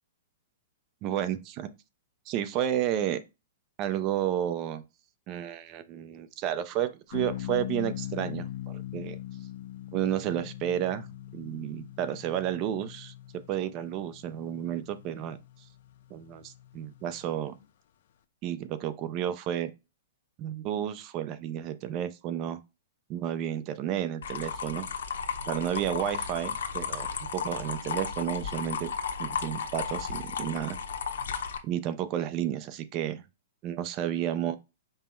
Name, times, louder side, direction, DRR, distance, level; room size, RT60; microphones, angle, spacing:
voice 1, 1.0-1.7 2.3-3.2 3.8-4.8 5.3-9.2 9.9-11.1 11.3-13.1 13.5-15.4 16.1-17.6 18.4-19.7 20.4-22.6 23.1-24.9 25.5-27.1 27.3-28.9 29.2-30.8 31.6-33.2 33.6-34.6, right 11 dB, 25° right, 0.4 m, -31 dB
sound 1, 7.1-17.6, left 13 dB, 45° left, 0.4 m, -41 dB
sound 2, 24.2-31.6, left 6 dB, 75° left, 0.7 m, -34 dB
5.4 x 2.0 x 4.4 m
hypercardioid pair, 175°, 0 cm